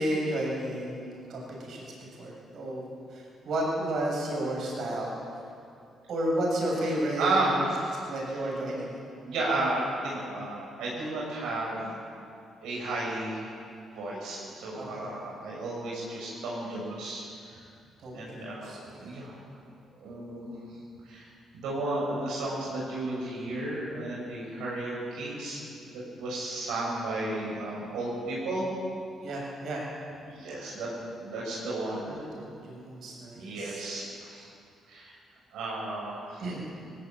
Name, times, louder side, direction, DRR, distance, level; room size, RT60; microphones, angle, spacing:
voice 1, 0.0-1.9 2.2-5.2 6.1-7.4 8.1-8.9 14.7-15.1 18.0-19.1 29.2-29.8 32.0-33.8 36.4-36.7, right 1 dB, 65° right, -2 dB, 7.4 m, -32 dB
voice 2, 7.2-8.1 9.3-11.9 12.6-13.6 13.9-17.2 17.5-17.7 18.1-19.4 20.0-20.5 21.0-21.3 21.5-28.7 30.3-30.9 31.2-32.1 33.3-34.5 34.9-35.2 35.5-36.4, right 2 dB, 90° right, -5 dB, 6.9 m, -33 dB
19.0 x 17.0 x 9.1 m, 2.5 s
cardioid pair, 90°, 0 cm